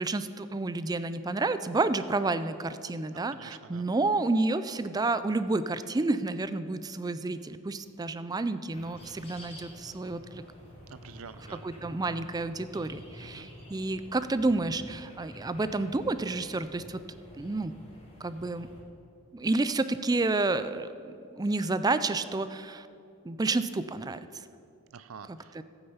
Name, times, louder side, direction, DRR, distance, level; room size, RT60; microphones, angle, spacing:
voice 1, 0.0-10.4 11.6-17.0 17.4-17.7 18.2-18.7 19.3-22.9 23.2-24.2 25.3-25.6, right 2 dB, 15° right, 12 dB, 0.4 m, -30 dB
voice 2, 3.3-3.9 10.9-11.6 13.2-13.5 24.9-25.6, right 6 dB, 70° right, 13 dB, 0.5 m, -47 dB
sound 1, 8.7-18.8, left 1 dB, 30° left, 3.0 m, -50 dB
15.5 x 8.9 x 5.6 m, 2.6 s
head